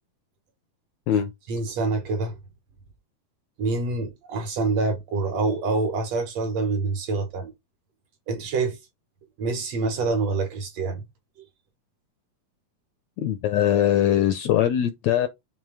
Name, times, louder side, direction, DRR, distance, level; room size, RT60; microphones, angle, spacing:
voice 1, 1.5-2.4 3.6-7.5 8.3-8.8 9.4-11.0, right 3 dB, 65° right, 1.8 m, -26 dB
voice 2, 13.2-15.3, left 11 dB, 80° left, 1.6 m, -21 dB
7.3 x 3.1 x 4.7 m
omnidirectional pair, 3.7 m